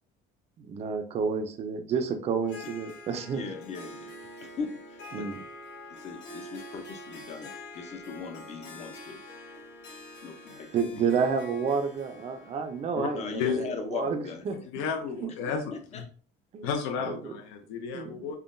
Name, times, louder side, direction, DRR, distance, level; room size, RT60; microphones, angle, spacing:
voice 1, 0.6-3.4 5.1-5.4 10.7-14.6 15.2-15.3 16.5-16.7 17.0-17.2 17.9-18.2, right 5 dB, 30° right, 7 dB, 0.4 m, -30 dB
Harp, 2.4-14.3, left 2 dB, 55° left, 1.0 m, -46 dB
voice 2, 3.3-4.1 4.4-5.3 6.0-9.2 10.2-10.7 13.1-14.6 15.5-16.0, left 5 dB, 30° left, 6 dB, 0.5 m, -39 dB
voice 3, 14.7-15.6 15.9-16.0 16.6-18.4, left 6 dB, 75° left, 4 dB, 0.7 m, -32 dB
3.6 x 2.2 x 2.5 m, 0.43 s
cardioid pair, 145°, 21 cm